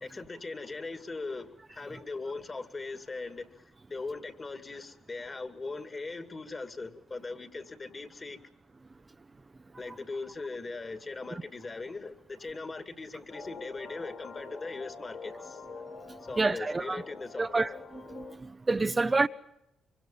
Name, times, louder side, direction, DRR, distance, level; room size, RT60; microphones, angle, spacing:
voice 1, 0.0-3.6 3.9-8.4 9.8-15.6 16.2-17.6, left 3 dB, 35° left, 2.5 m, -40 dB
sound 1, 13.3-18.4, left 4 dB, 70° left, 4.3 m, -45 dB
voice 2, 16.4-17.0 17.4-17.7 18.1-19.3, right 3 dB, 25° right, 0.7 m, -28 dB
24.5 x 24.5 x 5.7 m
supercardioid pair, 65°, 0 cm